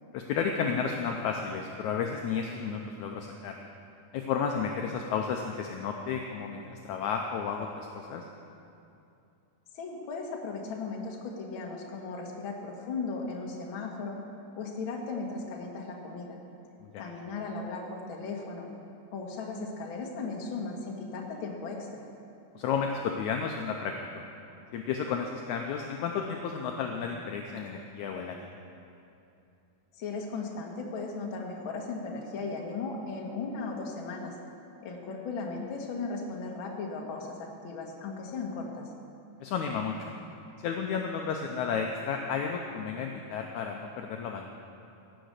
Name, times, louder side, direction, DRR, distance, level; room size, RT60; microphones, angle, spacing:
voice 1, 0.1-3.6 4.1-8.2 16.8-17.0 22.5-24.2 24.7-28.5 39.4-40.1 40.6-44.5, left 6 dB, 80° left, 2 dB, 1.7 m, -32 dB
voice 2, 9.7-14.2 14.6-16.4 17.0-18.7 19.1-22.0 30.0-34.3 34.8-38.9, left 4 dB, 50° left, 0 dB, 1.5 m, -37 dB
17.0 x 6.9 x 6.6 m, 2.7 s
omnidirectional pair, 4.1 m